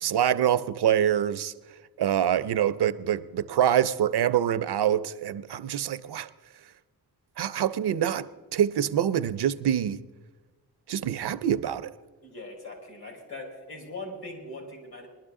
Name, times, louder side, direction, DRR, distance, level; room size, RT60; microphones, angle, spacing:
voice 1, 0.0-1.5 2.0-6.3 7.4-10.0 10.9-11.9, right 10 dB, 80° right, 0.5 m, -25 dB
voice 2, 12.2-15.1, left 2 dB, 70° left, 4.7 m, -40 dB
20.5 x 12.0 x 3.6 m
wide cardioid pair, 130°, 39 cm